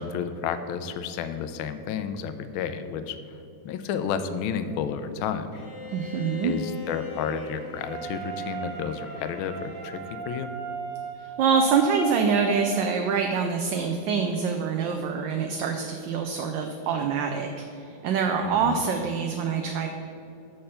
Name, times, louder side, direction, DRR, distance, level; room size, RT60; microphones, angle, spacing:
voice 1, 0.0-3.2 3.6-5.5 6.4-10.0 10.3-10.5 18.4-18.8, left 7 dB, 80° left, 11 dB, 1.4 m, -31 dB
Bowed string instrument, 5.5-10.2, left 4 dB, 45° left, 1.4 m, -42 dB
voice 2, 5.9-6.5 11.2-19.9, right 6 dB, 75° right, 4 dB, 1.2 m, -25 dB
Wind instrument woodwind instrument, 7.9-13.1, right 7 dB, 90° right, 1.9 m, -37 dB
6.7 x 6.6 x 5.6 m, 2.7 s
omnidirectional pair, 2.3 m